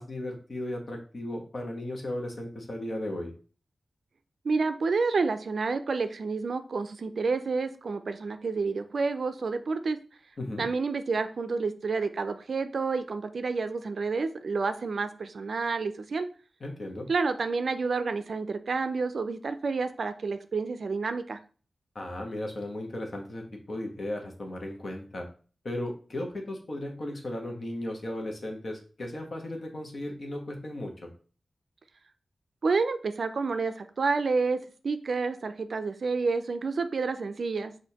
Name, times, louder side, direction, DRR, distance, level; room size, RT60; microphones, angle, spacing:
voice 1, 0.0-3.3 10.4-10.7 16.6-17.1 21.9-23.4 23.7-25.3 25.6-31.1, left 1 dB, 50° left, 2 dB, 1.0 m, -36 dB
voice 2, 4.4-10.0 10.6-16.3 17.1-21.4 32.6-34.6 34.8-37.7, right 4 dB, 65° right, 10 dB, 0.4 m, -29 dB
6.2 x 2.5 x 2.8 m, 0.39 s
wide cardioid pair, 120°, 0 cm